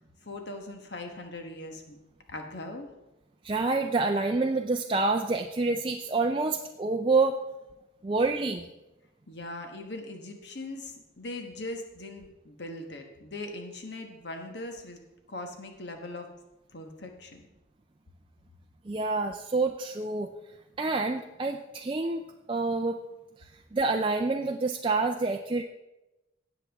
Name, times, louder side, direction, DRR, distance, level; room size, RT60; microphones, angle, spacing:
voice 1, 0.2-2.0 2.3-2.9 9.3-15.0 15.3-16.3 16.7-17.4, left 2 dB, 60° left, 4 dB, 1.2 m, -40 dB
voice 2, 3.4-7.4 8.0-8.7 18.9-20.3 20.8-22.2 22.5-23.0 23.4-25.6, right 3 dB, 25° right, 4 dB, 0.4 m, -27 dB
18.0 x 7.2 x 3.5 m, 1.0 s
head